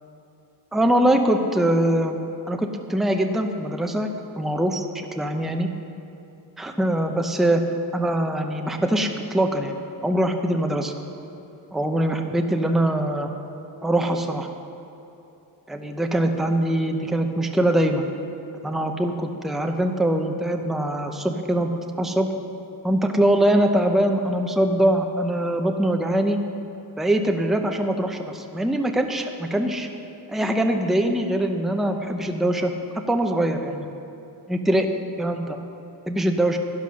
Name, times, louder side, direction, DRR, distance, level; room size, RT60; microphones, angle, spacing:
voice 1, 0.7-2.2 2.5-4.1 4.4-5.7 6.6-7.6 7.9-10.9 11.7-13.3 13.8-14.5 15.7-18.0 18.6-21.7 22.0-22.3 22.8-26.4 27.0-29.9 30.3-32.7 33.1-33.9 34.5-34.9 35.2-35.6 36.1-36.6, right 1 dB, ahead, 4 dB, 0.6 m, -22 dB
11.5 x 11.0 x 6.3 m, 2.9 s
wide cardioid pair, 155°, 41 cm